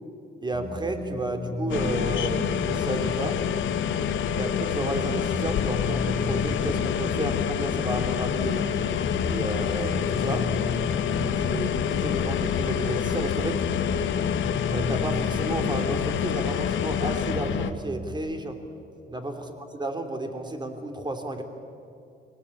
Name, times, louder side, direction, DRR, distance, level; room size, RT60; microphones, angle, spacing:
voice 1, 0.4-3.4 4.3-8.7 9.2-10.5 11.1-13.6 14.7-18.6 19.1-21.4, right 2 dB, 20° right, 5 dB, 3.0 m, -32 dB
sound 1, 0.5-18.2, equal, 70° right, 6.4 m, -36 dB
sound 2, 1.7-17.7, left 9 dB, 75° left, 1.3 m, -27 dB
24.5 x 18.0 x 8.5 m, 2.6 s
cardioid pair, 90°, 20 cm